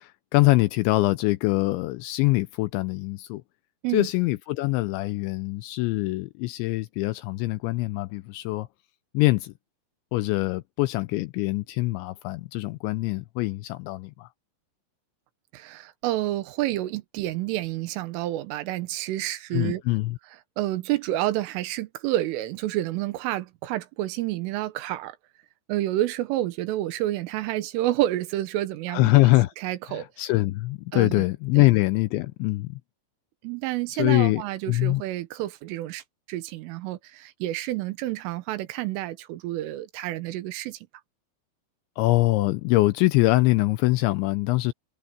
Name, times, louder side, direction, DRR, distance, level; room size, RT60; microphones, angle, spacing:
voice 1, 0.0-3.4 3.9-8.7 9.1-9.5 10.1-14.3 19.5-20.2 28.9-29.5 29.9-32.8 34.0-35.0 42.0-44.7, left 19 dB, 85° left, 2.8 m, -23 dB
voice 2, 15.5-19.8 20.6-25.2 25.7-29.1 29.6-30.1 30.9-31.3 31.6-31.7 33.4-40.8, right 15 dB, 85° right, 3.8 m, -29 dB
omnidirectional pair, 5.6 m